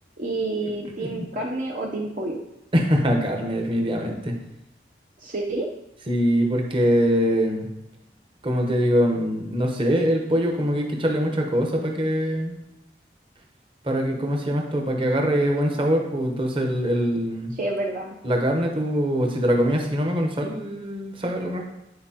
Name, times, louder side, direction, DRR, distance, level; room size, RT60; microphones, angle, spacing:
voice 1, 0.2-2.4 5.2-5.7 17.5-18.2, right 2 dB, 50° right, -2 dB, 0.6 m, -29 dB
voice 2, 2.7-4.4 6.1-7.7 8.4-12.6 13.8-17.6 18.2-21.6, equal, 30° right, 1 dB, 1.0 m, -23 dB
9.6 x 4.4 x 2.9 m, 0.91 s
head